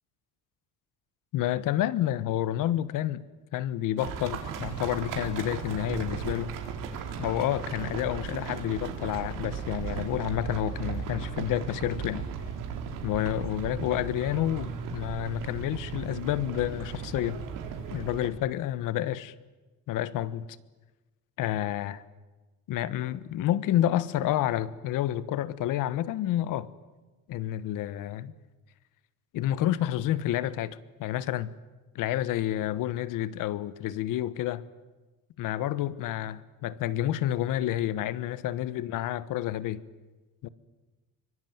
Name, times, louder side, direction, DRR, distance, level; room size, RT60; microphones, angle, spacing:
voice 1, 1.3-3.3 3.5-6.5 7.2-12.3 13.0-17.4 17.9-19.3 19.9-20.5 21.4-22.0 22.7-26.7 27.3-28.3 29.3-31.5 31.9-34.6 35.4-39.8 40.4-40.5, left 12 dB, 75° left, 1.3 m, -29 dB
sound 1, 4.0-18.3, right 7 dB, 80° right, 4.3 m, -36 dB
24.5 x 24.5 x 9.5 m
cardioid pair, 155°, 32 cm